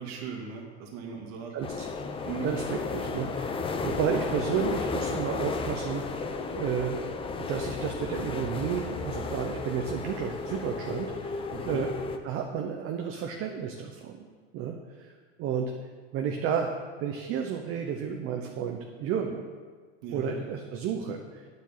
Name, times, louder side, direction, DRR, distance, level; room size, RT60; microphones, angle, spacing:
voice 1, 0.0-1.5 2.2-2.5 11.5-11.9 20.0-20.3, right 5 dB, 55° right, -1 dB, 2.0 m, -38 dB
voice 2, 1.5-1.9 2.4-7.0 7.4-11.9 12.2-14.3 14.5-15.1 15.4-15.7 16.1-16.7 17.0-19.4 20.1-21.4, right 7 dB, 40° right, 3 dB, 0.9 m, -32 dB
sound 1, 1.6-12.2, left 4 dB, 15° left, 0.6 m, -33 dB
9.3 x 7.5 x 5.7 m, 1.5 s
supercardioid pair, 125°, 34 cm